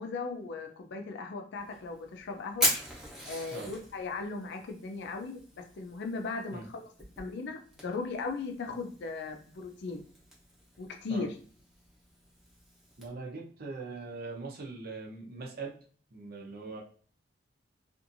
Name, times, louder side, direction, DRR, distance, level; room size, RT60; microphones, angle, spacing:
voice 1, 0.0-2.7 3.3-6.8 7.2-10.0 10.8-11.3, left 4 dB, 60° left, 4 dB, 0.5 m, -37 dB
Fire, 1.6-13.1, equal, ahead, 0.9 m, -40 dB
voice 2, 13.0-15.8 16.1-16.8, right 3 dB, 55° right, 0 dB, 0.7 m, -41 dB
2.6 x 2.5 x 2.6 m, 0.43 s
head